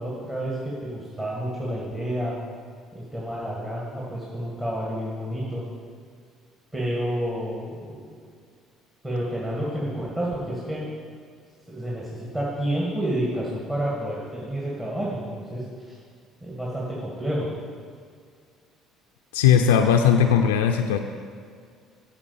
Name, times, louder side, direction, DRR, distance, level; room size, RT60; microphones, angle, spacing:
voice 1, 0.0-2.4 2.9-5.6 6.7-8.1 9.0-10.8 11.7-16.0 16.4-17.5, right 1 dB, 20° right, -6 dB, 2.1 m, -29 dB
voice 2, 19.3-21.0, left 8 dB, 90° left, 5 dB, 0.4 m, -18 dB
8.5 x 4.9 x 7.1 m, 2.1 s
hypercardioid pair, 65°, 0 cm